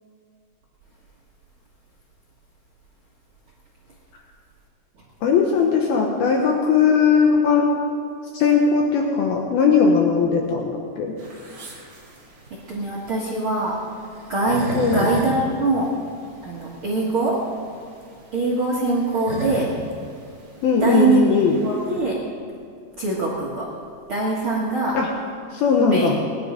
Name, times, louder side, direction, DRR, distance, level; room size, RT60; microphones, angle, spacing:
voice 1, 5.2-7.7 8.3-11.1 14.7-15.1 20.6-21.5 24.9-25.1 25.5-26.2, left 5 dB, 70° left, 1 dB, 2.8 m, -18 dB
sound 1, 11.2-22.0, right 1 dB, 30° right, 2.1 m, -35 dB
voice 2, 12.7-13.8 14.3-14.6 14.9-15.9 16.4-17.4 18.3-19.7 20.8-21.2 21.6-22.2 23.0-23.7 24.1-25.0 25.9-26.2, right 3 dB, 50° right, -4 dB, 1.6 m, -23 dB
20.0 x 11.0 x 5.1 m, 2.2 s
omnidirectional pair, 4.7 m